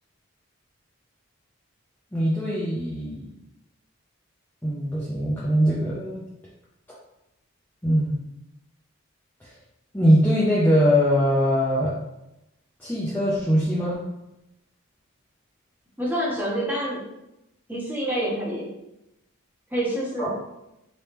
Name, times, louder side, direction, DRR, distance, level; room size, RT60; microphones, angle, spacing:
voice 1, 2.1-3.2 4.6-6.2 7.8-8.1 9.9-12.0 12.8-14.0 20.2-20.3, equal, 10° left, -8 dB, 0.5 m, -21 dB
voice 2, 16.0-17.0 17.7-18.7 19.7-20.3, right 1 dB, 10° right, -5 dB, 0.8 m, -27 dB
3.4 x 3.0 x 2.9 m, 0.89 s
head